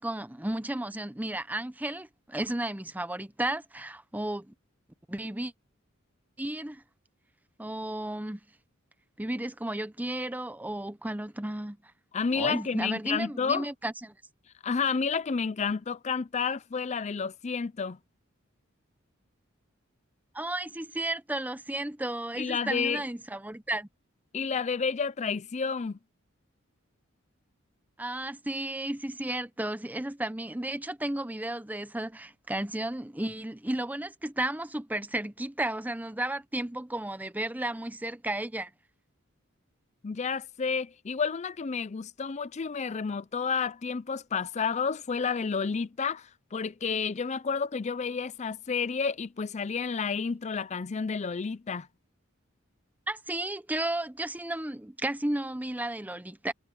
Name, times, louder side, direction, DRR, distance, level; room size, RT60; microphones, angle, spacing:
voice 1, 0.0-4.5 5.1-5.5 6.4-6.8 7.6-8.4 9.2-11.8 12.3-14.1 20.3-23.9 28.0-38.7 53.1-56.5, right 1 dB, 10° right, 0.8 m, -33 dB
voice 2, 12.1-13.7 14.6-18.0 22.4-23.0 24.3-26.0 40.0-51.9, left 5 dB, 35° left, 0.5 m, -30 dB
head